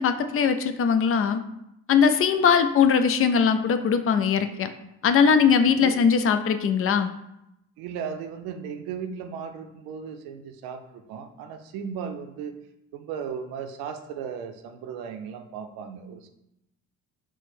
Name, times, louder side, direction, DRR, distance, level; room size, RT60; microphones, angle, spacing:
voice 1, 0.0-1.4 1.9-4.7 5.0-7.1, left 6 dB, 40° left, 9 dB, 0.4 m, -20 dB
voice 2, 7.8-12.6 12.9-16.3, right 7 dB, 80° right, 7 dB, 0.6 m, -36 dB
4.4 x 2.1 x 4.2 m, 0.83 s
supercardioid pair, 70°, 36 cm